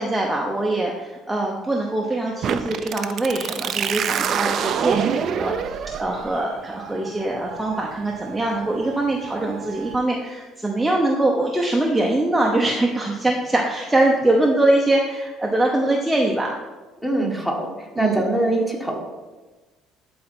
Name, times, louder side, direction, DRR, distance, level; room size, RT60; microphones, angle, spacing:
voice 1, 0.0-16.5 18.0-18.2, right 2 dB, 5° right, -2 dB, 0.9 m, -23 dB
sound 1, 2.4-9.9, right 8 dB, 50° right, 0.5 m, -28 dB
voice 2, 17.0-17.7 18.0-19.0, right 1 dB, 10° left, 0 dB, 1.7 m, -23 dB
11.5 x 4.3 x 4.4 m, 1.3 s
cardioid pair, 120°, 0 cm